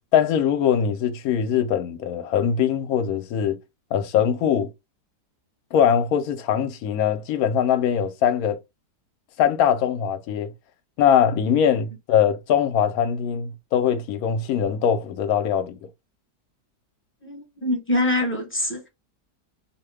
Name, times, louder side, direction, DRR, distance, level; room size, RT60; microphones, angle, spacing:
voice 1, 0.1-3.6 3.9-4.7 5.7-8.6 9.4-10.5 11.0-15.8, left 8 dB, 70° left, 1.0 m, -22 dB
voice 2, 17.2-18.9, left 1 dB, 15° left, 0.5 m, -24 dB
2.9 x 2.2 x 3.2 m
omnidirectional pair, 1.8 m